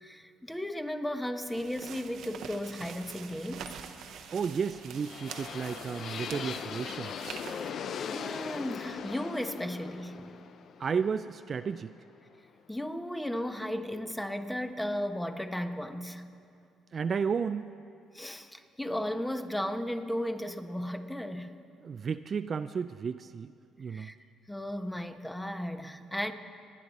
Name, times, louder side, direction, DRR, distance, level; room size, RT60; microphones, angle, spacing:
voice 1, 0.0-3.8 8.1-10.4 12.7-16.2 18.1-21.5 23.9-24.1 24.5-26.3, left 1 dB, 5° left, 8 dB, 1.0 m, -35 dB
sound 1, 1.4-7.7, right 7 dB, 70° right, 0.9 m, -45 dB
voice 2, 4.3-7.3 10.8-11.9 16.9-17.7 21.8-23.5 23.8-24.1, right 6 dB, 45° right, 11 dB, 0.3 m, -33 dB
sound 2, 4.4-12.3, left 7 dB, 60° left, 0.5 m, -40 dB
25.0 x 10.0 x 4.1 m, 2.4 s
supercardioid pair, 70°, 0 cm